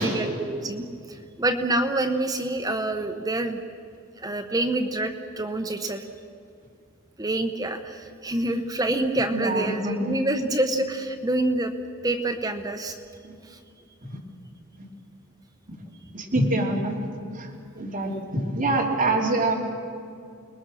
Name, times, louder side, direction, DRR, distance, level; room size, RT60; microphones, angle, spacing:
voice 1, 0.0-3.6 4.2-6.0 7.2-11.7 12.0-13.0 13.5-13.6, right 2 dB, 15° right, 5 dB, 0.9 m, -27 dB
voice 2, 9.3-10.2 13.2-13.3 14.0-14.2 14.8-14.9 15.7-15.8 16.1-17.0 17.3-19.5, right 2 dB, 40° right, -2 dB, 2.9 m, -26 dB
29.0 x 21.0 x 6.4 m, 2.4 s
head